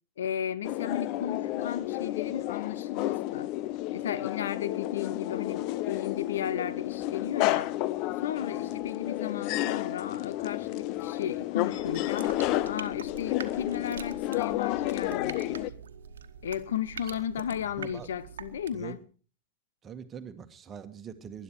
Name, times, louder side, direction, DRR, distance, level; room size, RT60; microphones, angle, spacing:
voice 1, 0.2-3.5 3.9-7.7 8.2-15.6 16.4-19.0, left 9 dB, 60° left, 1.0 m, -35 dB
sound 1, 0.6-15.7, left 15 dB, 40° left, 0.6 m, -31 dB
sound 2, 11.7-19.0, right 7 dB, 65° right, 1.3 m, -45 dB
voice 2, 17.4-18.1 18.7-19.0 19.8-21.4, right 7 dB, 25° right, 1.6 m, -43 dB
19.5 x 11.5 x 4.7 m
figure-of-eight pair, 90°, 0 cm